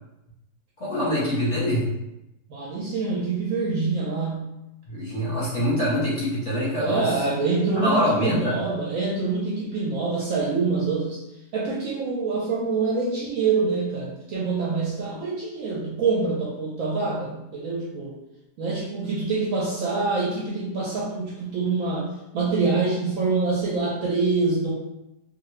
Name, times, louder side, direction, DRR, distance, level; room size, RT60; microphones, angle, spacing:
voice 1, 0.8-1.9 4.9-7.1 7.8-8.6, equal, 45° left, -9 dB, 0.9 m, -24 dB
voice 2, 2.5-4.5 6.7-11.2 11.5-18.2 18.6-24.7, right 4 dB, 65° right, -4 dB, 0.8 m, -25 dB
2.6 x 2.5 x 3.1 m, 0.91 s
omnidirectional pair, 1.8 m